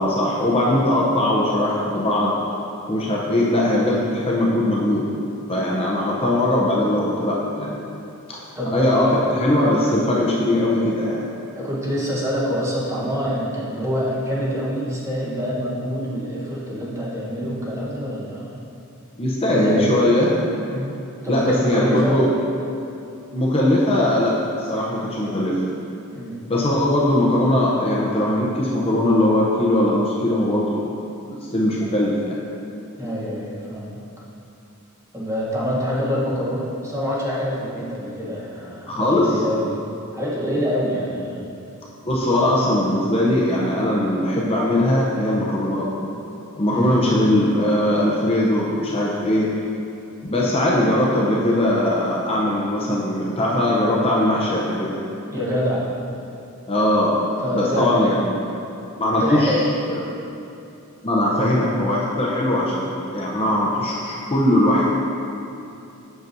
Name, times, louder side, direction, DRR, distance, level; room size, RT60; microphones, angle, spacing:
voice 1, 0.0-2.4 2.9-5.1 5.5-7.8 8.3-8.4 8.7-11.2 19.2-20.3 21.3-22.3 23.3-25.6 26.5-30.9 31.5-32.3 38.9-39.4 42.0-45.9 46.6-49.5 50.3-55.0 56.7-57.2 57.5-58.4 59.0-59.6 59.9-60.0 61.0-64.9, left 1 dB, 25° left, -5 dB, 0.6 m, -20 dB
voice 2, 8.6-9.2 11.5-18.6 19.5-19.9 20.7-21.0 21.2-22.2 26.1-26.4 33.0-34.0 35.1-39.8 40.1-41.4 42.3-42.5 46.7-47.1 55.3-55.9 57.4-58.3 59.2-59.7, equal, 15° right, -6 dB, 1.0 m, -26 dB
7.9 x 5.9 x 2.6 m, 2.8 s
head